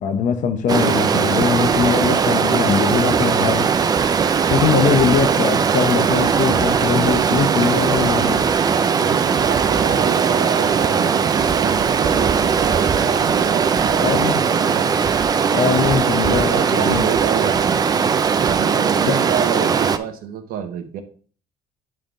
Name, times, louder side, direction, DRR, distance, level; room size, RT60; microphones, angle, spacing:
voice 1, 0.0-3.8 4.5-8.4 13.9-14.4 15.5-17.0 19.0-19.2, left 6 dB, 55° left, 0.8 m, -21 dB
Stream, 0.7-20.0, right 6 dB, 25° right, 0.4 m, -19 dB
voice 2, 8.9-14.9 16.2-17.8 18.4-21.0, right 8 dB, 70° right, 1.1 m, -28 dB
10.5 x 3.6 x 3.7 m
cardioid pair, 150°, 16 cm